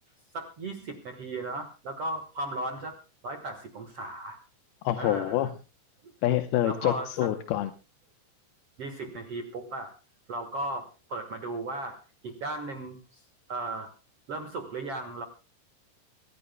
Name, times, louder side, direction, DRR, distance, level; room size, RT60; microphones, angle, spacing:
voice 1, 0.3-3.0 3.2-4.4 5.0-5.5 6.0-6.1 6.6-7.3 8.8-9.9 10.3-12.0 12.2-13.2 13.5-13.9 14.3-15.2, right 2 dB, 65° right, 5 dB, 1.5 m, -36 dB
voice 2, 4.8-5.5 6.2-7.7, left 13 dB, 75° left, 9 dB, 2.5 m, -26 dB
25.0 x 15.5 x 2.2 m, 0.32 s
omnidirectional pair, 5.0 m